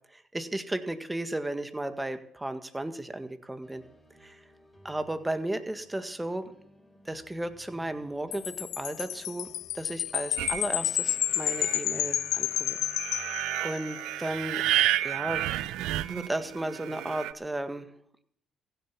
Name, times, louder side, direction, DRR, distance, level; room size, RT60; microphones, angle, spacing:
voice 1, 0.1-3.8 4.2-4.4 4.8-6.5 7.1-9.5 9.7-12.8 13.1-13.3 13.6-14.6 15.0-15.5 16.1-17.9, right 1 dB, 15° right, 9 dB, 1.7 m, -34 dB
sound 1, 3.6-15.9, equal, 10° left, 4.1 m, -57 dB
Wind chime, 8.3-14.0, left 13 dB, 75° left, 0.4 m, -31 dB
sound 2, 10.4-17.3, right 14 dB, 80° right, 0.6 m, -32 dB
15.5 x 7.8 x 8.5 m, 0.67 s
supercardioid pair, 60°, 0 cm